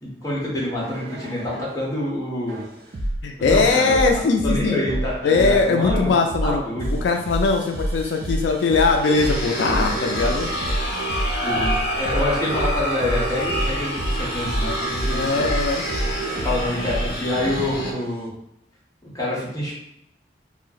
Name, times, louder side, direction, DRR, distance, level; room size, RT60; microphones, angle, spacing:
voice 1, 0.0-2.6 3.3-3.9 4.4-6.1 6.4-7.0 11.4-15.5 16.3-18.3 19.1-19.7, left 1 dB, 20° left, -6 dB, 0.9 m, -27 dB
sound 1, 0.8-1.8 2.5-17.1 17.8-18.2, right 1 dB, 55° right, 0.4 m, -28 dB
voice 2, 3.2-4.8 5.2-6.6 7.0-10.5 15.1-15.8, left 4 dB, 85° left, 4 dB, 0.3 m, -20 dB
sound 2, 9.0-17.9, right 1 dB, 55° left, 0.7 m, -27 dB
2.7 x 2.0 x 3.9 m, 0.79 s
head